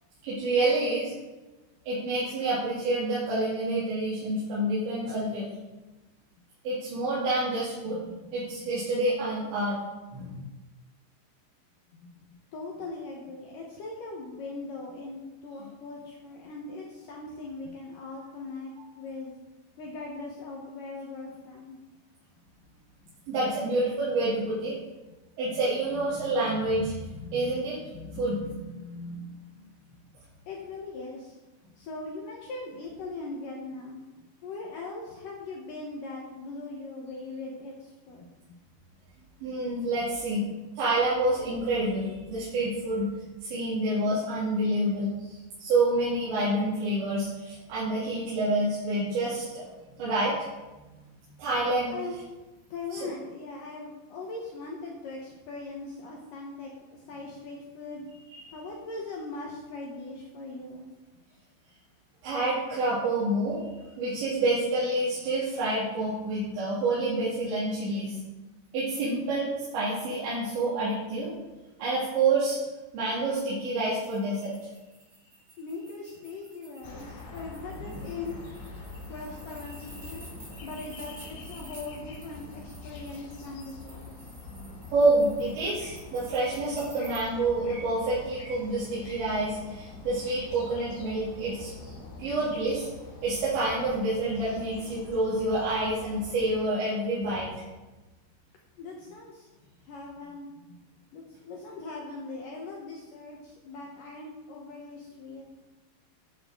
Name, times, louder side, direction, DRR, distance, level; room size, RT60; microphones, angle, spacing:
voice 1, 0.2-1.1 1.9-5.5 6.7-8.0 8.3-9.8 10.1-10.4 23.3-24.8 25.4-29.2 39.4-40.4 40.8-43.1 43.4-49.6 50.0-50.3 51.4-51.9 52.9-53.0 58.4-58.5 62.2-63.6 64.0-68.2 68.7-71.3 71.8-72.6 72.9-74.5 84.9-91.9 92.2-92.9 93.2-97.6, right 2 dB, 80° right, -10 dB, 5.2 m, -28 dB
voice 2, 11.9-12.3 12.5-19.3 19.8-21.8 30.5-31.4 31.8-34.0 34.4-38.6 51.9-52.2 52.7-58.0 58.5-60.9 75.6-78.4 79.1-80.3 80.6-84.3 98.8-99.5 99.8-100.8 101.1-105.5, left 3 dB, 65° left, -1 dB, 2.3 m, -40 dB
sound 1, 73.9-87.2, right 2 dB, 35° right, 3.7 m, -52 dB
sound 2, 76.8-96.6, left 2 dB, 85° left, 4.7 m, -44 dB
12.5 x 9.1 x 3.8 m, 1.1 s
omnidirectional pair, 5.1 m